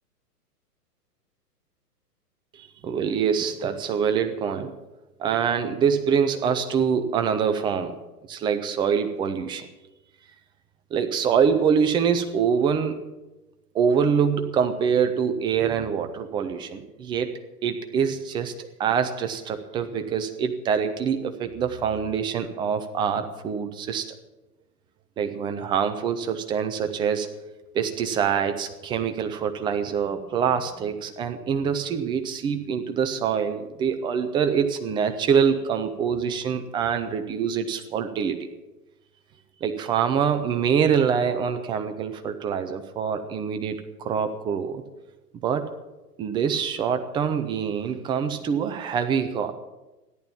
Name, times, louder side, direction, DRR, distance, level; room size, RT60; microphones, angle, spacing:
voice 1, 2.5-4.7 5.2-8.0 8.3-9.7 10.9-13.0 13.7-17.3 17.6-24.1 25.2-27.3 27.7-38.5 39.6-44.8 45.4-45.8 46.2-49.5, right 7 dB, 10° right, 8 dB, 0.5 m, -25 dB
14.0 x 11.0 x 7.3 m, 1.0 s
figure-of-eight pair, 115°, 48 cm